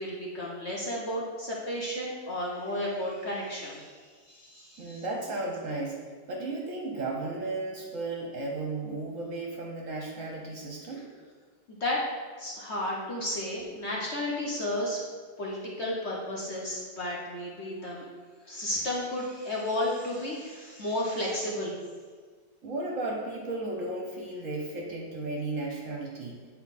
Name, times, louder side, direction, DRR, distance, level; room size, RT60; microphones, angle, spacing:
voice 1, 0.0-4.0 4.3-5.0 11.7-12.0 12.4-15.0 15.4-18.0 18.5-21.8, left 1 dB, 45° left, -4 dB, 1.1 m, -33 dB
voice 2, 4.8-6.0 6.3-11.1 22.6-26.4, right 2 dB, 55° right, -1 dB, 1.1 m, -34 dB
8.3 x 4.0 x 4.2 m, 1.5 s
omnidirectional pair, 1.9 m